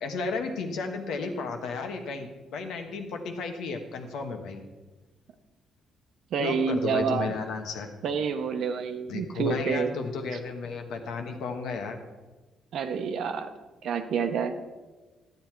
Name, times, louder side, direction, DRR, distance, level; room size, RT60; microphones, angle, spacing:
voice 1, 0.0-4.6 6.4-7.9 9.1-12.0, left 4 dB, 80° left, 5 dB, 1.2 m, -33 dB
voice 2, 6.3-7.3 8.0-10.0 12.7-13.5 13.8-14.6, right 6 dB, 70° right, 8 dB, 0.9 m, -28 dB
12.0 x 8.0 x 4.5 m, 1.2 s
cardioid pair, 90°, 0 cm